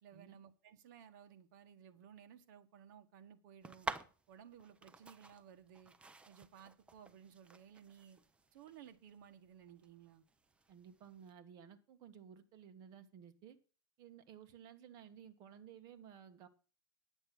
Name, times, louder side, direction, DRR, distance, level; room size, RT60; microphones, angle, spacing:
voice 1, 0.0-3.9 4.3-5.9 6.3-8.2 8.5-10.2, right 8 dB, 55° right, 1.5 m, -58 dB
sound 1, 3.6-11.3, right 3 dB, 10° right, 0.6 m, -50 dB
voice 2, 10.7-13.6 14.0-16.5, right 8 dB, 35° right, 1.5 m, -56 dB
10.5 x 7.9 x 6.2 m
supercardioid pair, 145°, 12 cm